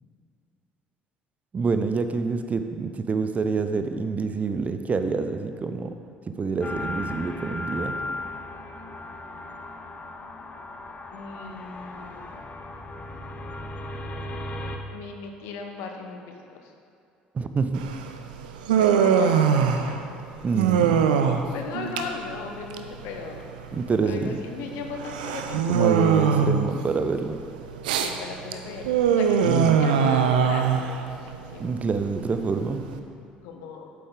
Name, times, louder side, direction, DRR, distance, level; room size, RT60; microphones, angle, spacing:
voice 1, 1.5-5.9 6.4-8.0 17.3-17.8 20.4-21.1 23.7-24.3 25.7-27.4 29.4-29.9 31.6-32.8, right 4 dB, 30° right, 8 dB, 0.6 m, -27 dB
sound 1, 6.6-14.8, left 1 dB, 30° left, 0.9 m, -36 dB
voice 2, 11.1-12.3 14.9-16.7 18.7-20.2 21.5-23.4 24.0-25.6 28.0-31.8 33.4-33.9, left 5 dB, 65° left, 3 dB, 1.0 m, -37 dB
Human voice, 17.7-33.0, right 7 dB, 75° right, 0.5 m, -23 dB
8.5 x 7.8 x 3.8 m, 2.4 s
figure-of-eight pair, 60°, 5 cm